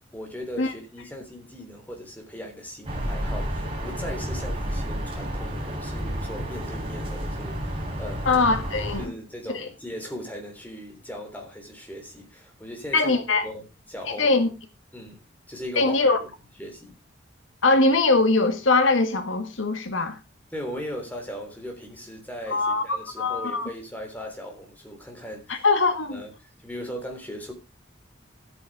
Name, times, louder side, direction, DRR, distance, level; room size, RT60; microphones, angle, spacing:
voice 1, 0.1-8.3 9.0-13.2 13.4-14.3 14.9-15.2 15.5-16.3 16.6-16.9 20.5-25.7 26.1-27.5, equal, 10° left, 3.5 m, -38 dB
sound 1, 2.8-9.1, equal, 30° right, 4.1 m, -31 dB
voice 2, 8.3-9.1 9.5-9.7 12.9-13.4 14.1-14.5 15.8-16.2 17.6-20.2 22.5-23.7 25.5-26.2, left 3 dB, 80° left, 1.7 m, -22 dB
13.5 x 8.5 x 4.9 m
head